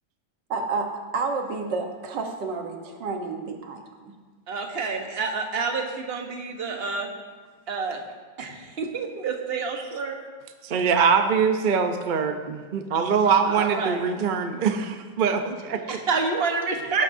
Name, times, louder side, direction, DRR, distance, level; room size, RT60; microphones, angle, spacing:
voice 1, 0.5-4.1 9.8-9.9, right 4 dB, 75° right, 3 dB, 1.8 m, -30 dB
voice 2, 4.5-7.1 7.7-8.0 8.4-10.2 13.4-14.0 15.9-17.0, right 4 dB, 35° right, 3 dB, 1.3 m, -28 dB
voice 3, 10.6-15.8, right 6 dB, 60° right, 6 dB, 0.5 m, -23 dB
18.5 x 11.5 x 2.7 m, 1.4 s
omnidirectional pair, 1.9 m